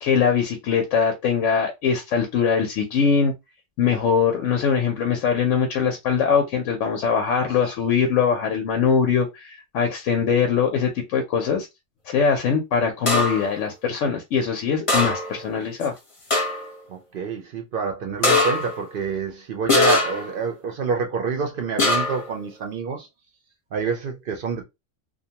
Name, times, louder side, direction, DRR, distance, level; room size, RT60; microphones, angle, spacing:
voice 1, 0.0-3.3 3.8-11.7 12.1-15.9, left 6 dB, 90° left, 0.9 m, -22 dB
sound 1, 13.1-13.5 14.9-15.5 15.8-15.9 16.3-16.7 18.2-18.8 19.7-20.4 21.8-22.3, left 2 dB, 30° left, 0.7 m, -21 dB
voice 2, 16.9-23.1 23.7-24.6, right 5 dB, 60° right, 0.6 m, -27 dB
2.6 x 2.2 x 2.8 m
omnidirectional pair, 1.3 m